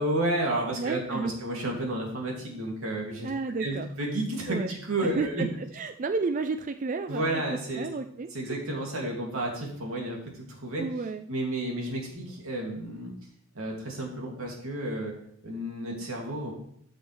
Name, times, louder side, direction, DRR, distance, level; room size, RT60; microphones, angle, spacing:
voice 1, 0.0-3.3 3.6-5.4 7.1-7.9 8.3-10.8 11.3-13.1 13.5-15.1 15.4-16.5, right 1 dB, 90° right, -1 dB, 2.6 m, -31 dB
voice 2, 0.7-1.3 3.2-3.9 4.5-8.6 10.8-11.2, right 4 dB, 40° right, 8 dB, 0.4 m, -32 dB
13.0 x 6.3 x 3.3 m, 0.67 s
head